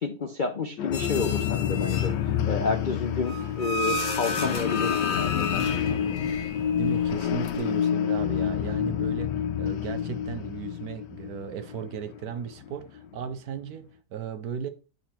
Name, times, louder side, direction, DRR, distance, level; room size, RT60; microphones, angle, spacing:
voice 1, 0.0-6.0, left 5 dB, 65° left, 0.5 m, -30 dB
sound 1, 0.8-13.3, left 8 dB, 80° left, 1.3 m, -29 dB
sound 2, 0.9-2.3 3.2-7.7, left 3 dB, 50° left, 1.0 m, -33 dB
voice 2, 6.8-14.7, right 7 dB, 65° right, 1.1 m, -36 dB
9.3 x 3.8 x 4.3 m
omnidirectional pair, 1.9 m